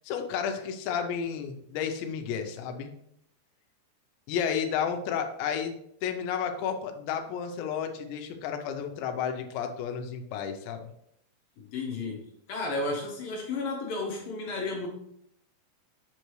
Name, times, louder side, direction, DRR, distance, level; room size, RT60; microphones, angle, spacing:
voice 1, 0.0-2.9 4.3-5.7 6.0-10.9, left 7 dB, 90° left, 5 dB, 3.0 m, -32 dB
voice 2, 11.6-14.9, left 3 dB, 65° left, 0 dB, 2.5 m, -33 dB
8.0 x 6.6 x 3.2 m, 0.74 s
omnidirectional pair, 5.0 m